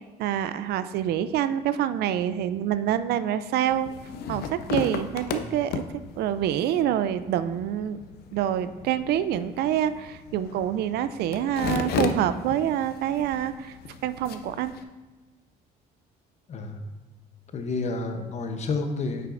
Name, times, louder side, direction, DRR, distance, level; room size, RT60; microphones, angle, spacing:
voice 1, 0.2-3.9 4.3-5.8 6.2-8.0 8.3-13.7 14.0-14.7, right 10 dB, 70° right, 13 dB, 0.4 m, -26 dB
sound 1, 3.7-14.8, left 5 dB, 70° left, 0.6 m, -35 dB
voice 2, 16.5-16.8 17.5-19.3, left 3 dB, 40° left, 6 dB, 0.8 m, -31 dB
9.0 x 6.6 x 2.5 m, 1.2 s
cardioid pair, 110°, 17 cm